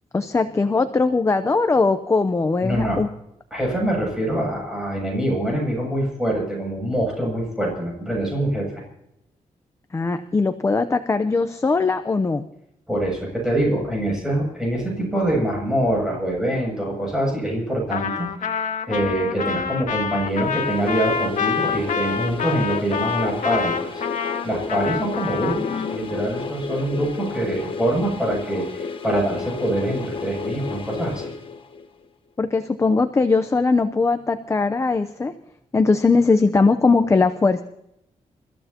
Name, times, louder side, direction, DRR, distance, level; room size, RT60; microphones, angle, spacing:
voice 1, 0.1-3.1 9.9-12.5 25.6-26.1 32.4-35.3 35.7-37.6, left 4 dB, 20° left, 8 dB, 0.7 m, -20 dB
voice 2, 2.6-3.0 3.5-8.7 12.9-24.0 24.4-31.2, right 1 dB, 5° right, -2 dB, 7.5 m, -24 dB
Trumpet, 17.9-25.9, left 6 dB, 70° left, 1.7 m, -27 dB
sound 1, 20.2-32.0, left 5 dB, 40° left, 1.2 m, -32 dB
29.0 x 14.5 x 2.9 m, 0.80 s
wide cardioid pair, 180°, 14 cm